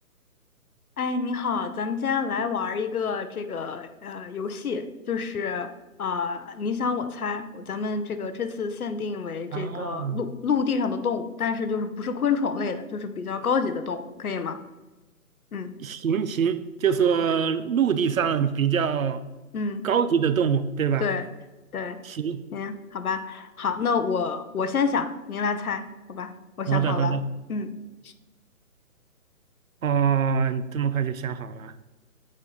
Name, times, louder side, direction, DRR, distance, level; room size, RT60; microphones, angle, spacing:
voice 1, 1.0-5.7 6.0-14.6 15.5-15.7 19.5-19.9 21.0-21.3 21.7-22.0 22.5-27.2 27.5-27.7, left 5 dB, 70° left, 10 dB, 0.9 m, -28 dB
voice 2, 9.5-10.2 15.8-19.2 19.8-21.1 22.0-22.4 26.7-27.3 29.8-31.7, right 7 dB, 65° right, 13 dB, 0.6 m, -24 dB
8.7 x 4.2 x 3.9 m, 1.1 s
hypercardioid pair, 170°, 44 cm